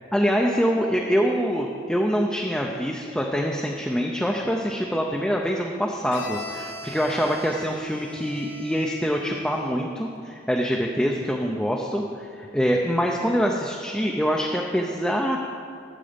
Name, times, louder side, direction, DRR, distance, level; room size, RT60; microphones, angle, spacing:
voice 1, 0.1-15.4, equal, 5° left, -1 dB, 0.5 m, -25 dB
Bowed string instrument, 6.1-9.9, left 1 dB, 65° left, 1.2 m, -40 dB
12.5 x 7.5 x 5.2 m, 2.4 s
head